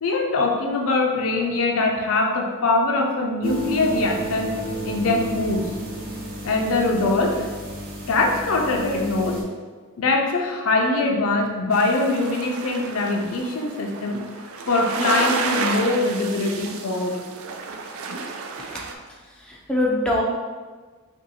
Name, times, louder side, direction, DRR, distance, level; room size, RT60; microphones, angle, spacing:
voice 1, 0.0-4.5 4.8-5.6 6.4-7.5 8.1-9.4 10.0-14.2 14.7-17.2, left 2 dB, 90° left, 1 dB, 0.5 m, -22 dB
sound 1, 3.4-9.4, equal, 45° right, 0.8 m, -32 dB
sound 2, 11.7-18.9, right 4 dB, 85° right, 0.4 m, -31 dB
voice 2, 19.1-20.2, left 1 dB, 5° left, -4 dB, 0.4 m, -24 dB
3.0 x 2.7 x 4.1 m, 1.4 s
head